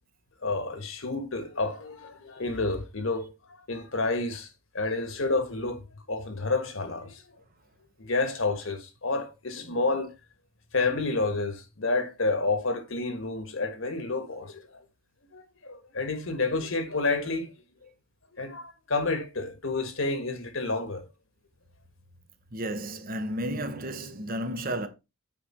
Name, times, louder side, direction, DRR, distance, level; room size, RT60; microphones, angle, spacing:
voice 1, 0.4-3.3 3.7-4.5 4.7-5.8 6.1-7.2 8.0-10.1 10.7-14.8 15.3-17.5 18.3-21.1, left 3 dB, 65° left, 1.6 m, -29 dB
voice 2, 22.5-24.9, right 1 dB, 40° right, 1.1 m, -32 dB
8.0 x 5.0 x 4.5 m
head